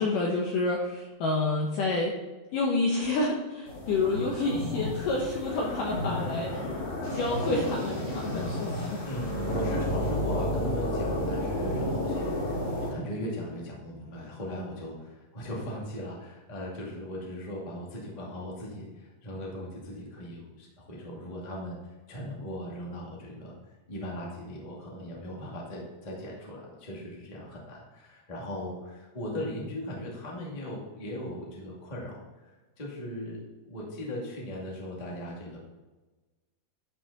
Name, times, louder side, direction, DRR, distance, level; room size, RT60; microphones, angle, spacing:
voice 1, 0.0-2.1 2.5-6.6 7.1-9.0, left 2 dB, 70° left, -1 dB, 2.1 m, -29 dB
sound 1, 3.7-12.9, left 1 dB, 50° left, 5.1 m, -31 dB
voice 2, 8.7-21.8 22.1-23.6 23.9-32.1 32.4-32.5 32.8-35.6, equal, 20° left, -4 dB, 1.0 m, -38 dB
11.0 x 6.2 x 4.1 m, 1.2 s
omnidirectional pair, 5.0 m